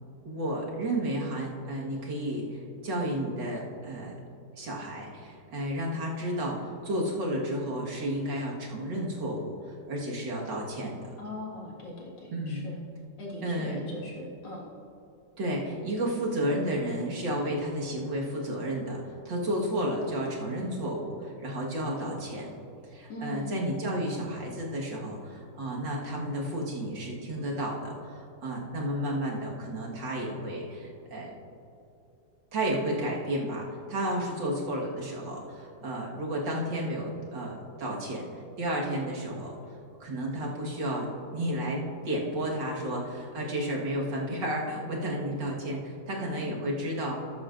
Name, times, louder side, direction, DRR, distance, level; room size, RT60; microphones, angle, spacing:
voice 1, 0.3-4.1 4.6-9.6 9.9-11.1 12.3-12.7 13.4-13.8 15.4-22.5 22.9-31.3 32.5-38.2 38.6-39.6 40.0-47.2, right 1 dB, 80° right, -3 dB, 2.4 m, -32 dB
voice 2, 11.2-12.8 13.2-14.6 23.1-23.6 45.3-45.4 46.3-46.5, left 2 dB, 90° left, -4 dB, 2.6 m, -40 dB
14.0 x 12.0 x 2.6 m, 2.8 s
omnidirectional pair, 1.9 m